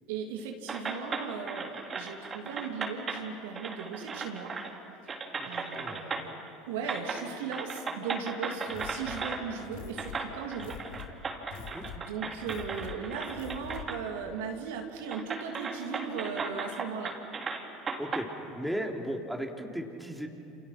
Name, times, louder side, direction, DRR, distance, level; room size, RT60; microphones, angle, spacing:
voice 1, 0.1-4.5 5.4-6.3 6.7-10.8 11.9-17.1, right 6 dB, 70° right, 2 dB, 2.9 m, -37 dB
sound 1, 0.7-3.2 3.5-4.8 5.1-6.5 6.8-7.2 7.5-9.4 10.0-14.0 14.4-14.5 15.1-18.3, right 4 dB, 30° right, 3.7 m, -36 dB
sound 2, 8.7-14.1, left 6 dB, 70° left, 2.3 m, -46 dB
voice 2, 18.6-20.3, equal, 5° right, 1 dB, 3.3 m, -35 dB
29.0 x 29.0 x 6.1 m, 2.7 s
hypercardioid pair, 75°, 0 cm